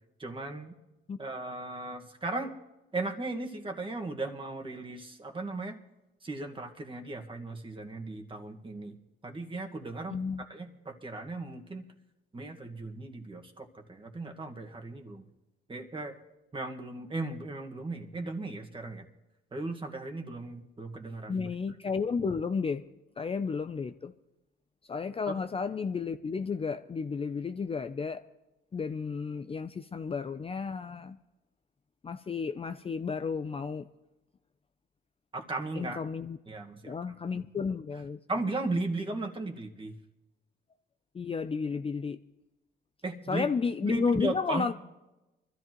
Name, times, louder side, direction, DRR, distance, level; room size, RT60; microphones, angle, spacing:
voice 1, 0.2-0.7 1.2-2.5 2.9-5.8 6.2-9.0 9.2-11.8 12.3-15.3 15.7-16.1 16.5-19.1 19.5-21.5 25.3-25.4 35.3-36.0 36.5-36.9 37.3-37.4 38.3-39.9 43.0-43.5 43.8-44.7, right 2 dB, 25° right, 3 dB, 1.7 m, -36 dB
voice 2, 10.1-10.4 21.3-22.8 23.2-24.1 24.9-28.2 28.7-31.2 32.0-33.9 35.8-36.4 36.9-38.2 41.1-42.2 43.3-44.7, left 5 dB, 30° left, 9 dB, 0.5 m, -32 dB
24.0 x 13.5 x 3.1 m, 1.0 s
cardioid pair, 90°, 20 cm